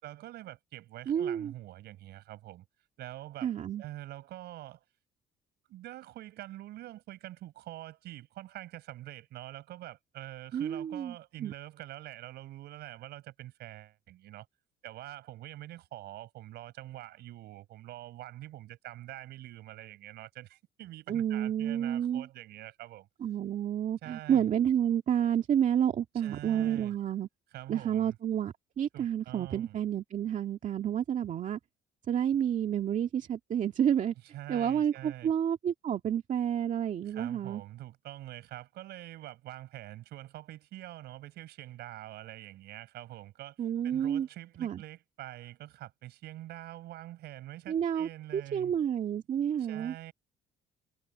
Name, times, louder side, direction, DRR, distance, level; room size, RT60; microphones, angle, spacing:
voice 1, 0.0-2.7 3.0-3.5 3.8-4.8 5.7-14.5 14.8-23.1 24.0-24.5 26.1-26.9 27.5-28.2 28.9-29.8 34.3-35.3 37.0-43.6 43.8-48.8 49.6-50.1, right 15 dB, 75° right, 5.8 m, -45 dB
voice 2, 1.1-1.5 3.4-3.8 10.5-11.1 11.4-11.5 21.1-22.3 23.2-27.3 27.7-31.6 32.1-34.1 34.5-37.6 43.6-44.3 44.6-44.8 47.7-49.9, right 9 dB, 50° right, 2.0 m, -30 dB
cardioid pair, 110°, 17 cm